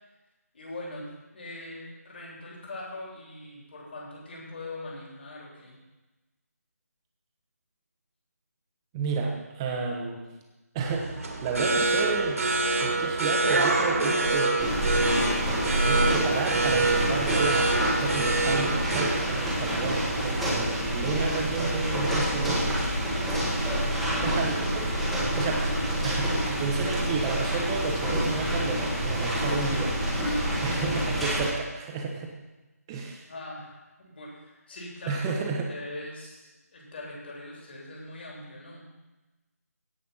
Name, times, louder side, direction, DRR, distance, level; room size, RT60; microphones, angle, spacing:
voice 1, 0.5-5.8 23.7-24.4 30.5-30.8 33.3-35.3 35.7-38.8, left 1 dB, 40° left, -3 dB, 3.8 m, -41 dB
voice 2, 8.9-10.2 10.7-12.4 12.8-14.8 15.9-22.8 24.2-25.0 25.3-25.7 26.0-29.9 30.6-32.3 32.9-33.2 35.1-35.7, right 4 dB, 15° right, 0 dB, 1.3 m, -31 dB
sound 1, 10.9-20.5, right 2 dB, 60° right, 2.4 m, -26 dB
sound 2, 14.6-31.5, right 1 dB, ahead, 1.6 m, -27 dB
17.0 x 5.7 x 5.7 m, 1.1 s
figure-of-eight pair, 165°, 9 cm